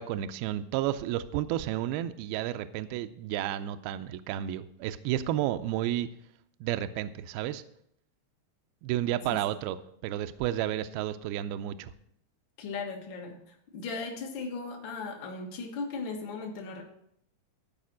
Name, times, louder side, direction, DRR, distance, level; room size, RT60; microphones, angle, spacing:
voice 1, 0.0-6.1 6.6-7.6 8.8-9.8 10.0-11.9, right 12 dB, 80° right, 10 dB, 2.3 m, -31 dB
voice 2, 12.6-16.8, left 4 dB, 65° left, 2 dB, 1.1 m, -37 dB
14.0 x 5.0 x 6.2 m, 0.71 s
omnidirectional pair, 4.7 m